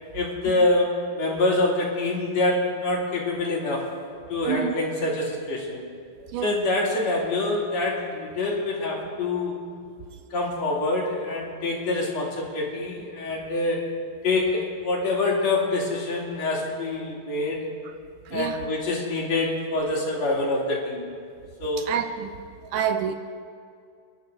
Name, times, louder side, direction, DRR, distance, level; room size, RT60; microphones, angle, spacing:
voice 1, 0.1-3.8 4.3-5.8 6.4-9.5 10.3-13.8 14.2-17.6 18.3-21.0 21.6-21.9, left 2 dB, 55° left, -3 dB, 3.6 m, -25 dB
voice 2, 18.3-18.6 21.9-22.3 22.7-23.1, right 9 dB, 80° right, 8 dB, 2.0 m, -27 dB
28.5 x 11.5 x 3.9 m, 2.3 s
omnidirectional pair, 3.9 m